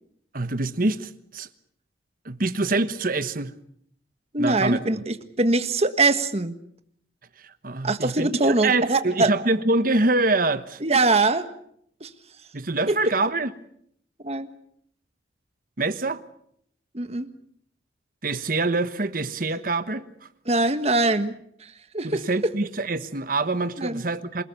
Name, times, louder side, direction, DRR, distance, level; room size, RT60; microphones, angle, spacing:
voice 1, 0.3-1.5 2.2-3.5 4.4-5.0 7.4-10.8 12.5-13.5 15.8-16.2 18.2-20.3 22.0-24.4, right 2 dB, 50° right, 1.3 m, -25 dB
voice 2, 4.3-6.5 7.8-9.3 10.8-11.5 12.0-12.1 12.9-13.0 14.2-14.5 16.9-17.3 20.5-21.3 21.9-22.2 23.8-24.0, right 2 dB, 35° right, 1.6 m, -22 dB
27.5 x 19.5 x 6.9 m
head